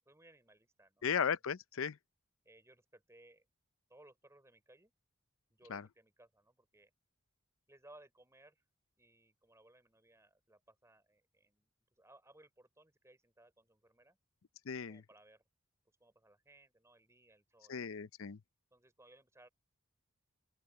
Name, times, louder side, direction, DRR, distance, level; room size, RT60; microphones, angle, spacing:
voice 1, 0.0-1.1 2.4-3.5 3.9-4.9 5.5-6.9 7.7-8.6 9.0-14.2 14.9-15.4 16.0-17.9 18.7-19.5, right 1 dB, 15° right, 4.2 m, -63 dB
voice 2, 1.0-2.0 5.7-5.8 14.7-15.0 17.7-18.4, left 7 dB, 65° left, 0.6 m, -36 dB
open air
head